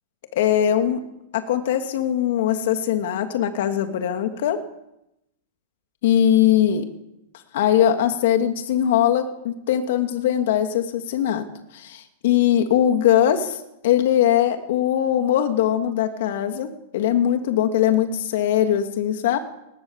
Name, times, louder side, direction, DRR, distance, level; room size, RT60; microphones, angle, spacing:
voice 1, 0.3-1.0 1.3-4.6 6.0-6.8 7.5-11.4 11.7-19.4, left 10 dB, 65° left, 6 dB, 2.8 m, -21 dB
23.5 x 20.0 x 7.5 m, 0.84 s
hypercardioid pair, 140°, 0 cm